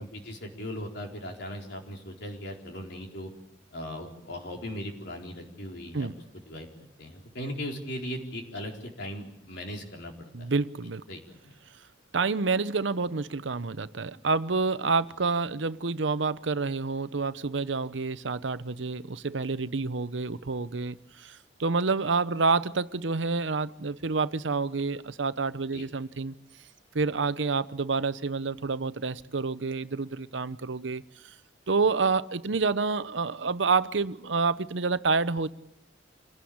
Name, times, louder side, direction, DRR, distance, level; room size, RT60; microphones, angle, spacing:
voice 1, 0.0-3.3 3.7-6.1 6.5-10.5 11.1-11.5 25.7-25.9, equal, 65° left, 1 dB, 4.3 m, -38 dB
voice 2, 10.3-11.0 12.1-26.3 26.9-31.3 31.7-35.5, right 4 dB, 75° right, 14 dB, 0.8 m, -28 dB
27.0 x 17.5 x 8.7 m, 0.87 s
head